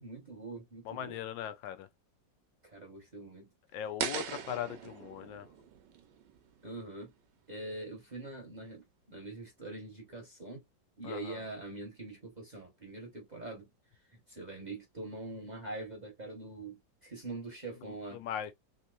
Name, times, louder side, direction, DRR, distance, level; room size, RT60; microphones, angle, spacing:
voice 1, 0.0-1.2 2.6-3.5 6.6-7.1 7.5-10.6 11.0-13.7 14.3-18.2, right 2 dB, 30° right, 0.9 m, -44 dB
voice 2, 0.8-1.9 3.7-5.5 11.0-11.4 17.9-18.5, left 10 dB, 85° left, 1.3 m, -40 dB
sound 1, 4.0-7.0, right 8 dB, 75° right, 1.3 m, -40 dB
3.5 x 2.8 x 2.3 m
omnidirectional pair, 2.0 m